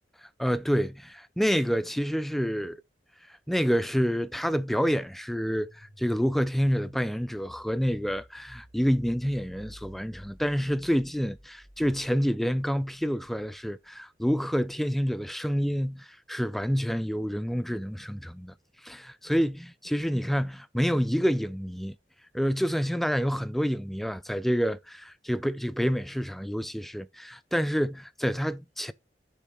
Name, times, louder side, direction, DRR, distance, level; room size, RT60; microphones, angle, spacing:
voice 1, 0.4-2.8 3.5-18.5 18.8-22.0 22.3-28.9, equal, ahead, 0.3 m, -28 dB
sound 1, 5.5-14.2, equal, 55° right, 2.2 m, -53 dB
6.8 x 3.7 x 6.1 m
head